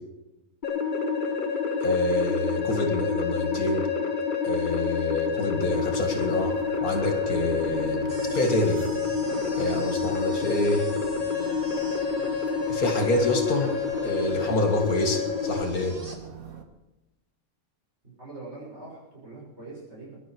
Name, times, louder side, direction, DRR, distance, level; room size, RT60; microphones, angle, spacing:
sound 1, 0.6-15.6, left 5 dB, 35° left, 1.3 m, -28 dB
voice 1, 1.8-3.9 4.4-8.8 9.6-10.9 12.7-13.8 14.0-16.0, left 1 dB, 75° left, 4 dB, 2.6 m, -27 dB
sound 2, 5.6-16.6, right 5 dB, 70° right, 1.9 m, -45 dB
sound 3, 8.1-16.2, right 1 dB, 25° right, 1.8 m, -46 dB
voice 2, 18.0-20.2, right 2 dB, 50° right, -5 dB, 6.9 m, -43 dB
22.5 x 11.5 x 4.7 m, 1.0 s
omnidirectional pair, 1.5 m